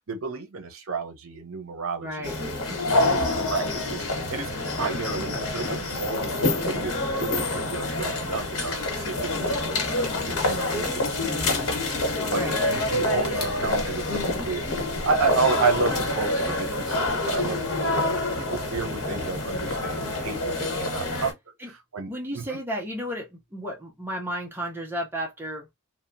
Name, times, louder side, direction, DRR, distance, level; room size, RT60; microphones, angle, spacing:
voice 1, 0.1-2.3 2.7-3.2 3.5-14.6 15.0-21.3 21.6-22.6, right 4 dB, 65° right, 0.7 m, -31 dB
voice 2, 2.0-2.4 12.3-12.6 21.0-21.3 21.6-21.7 22.1-25.7, equal, 10° right, 0.5 m, -33 dB
sound 1, 2.2-21.3, left 2 dB, 85° left, 1.0 m, -27 dB
2.8 x 2.1 x 2.5 m
head